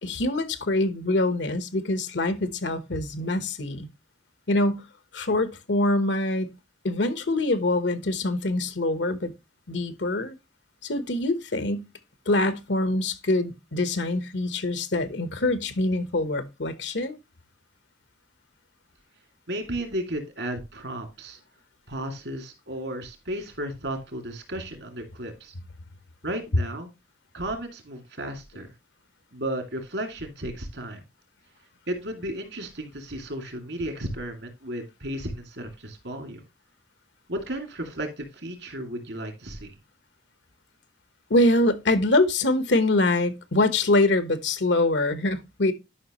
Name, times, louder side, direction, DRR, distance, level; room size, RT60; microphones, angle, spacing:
voice 1, 0.0-3.9 4.5-4.8 5.1-6.5 6.8-9.3 9.7-10.3 10.8-11.9 12.3-17.2 41.3-45.7, left 2 dB, 80° left, 1.1 m, -24 dB
voice 2, 19.5-21.4 21.9-25.5 26.2-26.9 27.3-28.7 29.3-31.0 31.9-36.4 37.3-39.7, right 1 dB, 75° right, 2.4 m, -34 dB
11.5 x 5.8 x 3.0 m
head